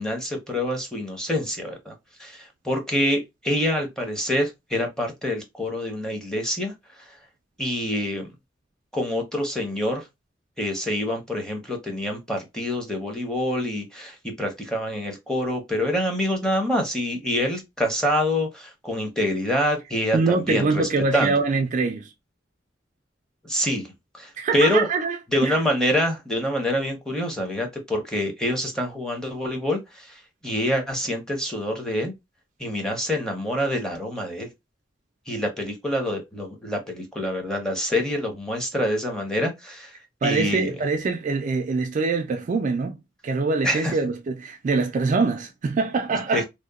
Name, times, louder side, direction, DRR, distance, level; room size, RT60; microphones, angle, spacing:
voice 1, 0.0-1.9 2.2-6.7 7.6-8.3 8.9-10.0 10.6-21.4 23.4-23.9 24.2-24.9 25.3-30.1 30.4-32.1 32.6-34.5 35.3-39.9 40.2-40.7 43.6-43.9 46.3-46.4, left 1 dB, 5° left, 0.6 m, -26 dB
voice 2, 20.1-22.1 24.4-25.6 40.2-43.0 43.2-46.4, right 4 dB, 40° right, 0.3 m, -24 dB
2.8 x 2.0 x 2.3 m
head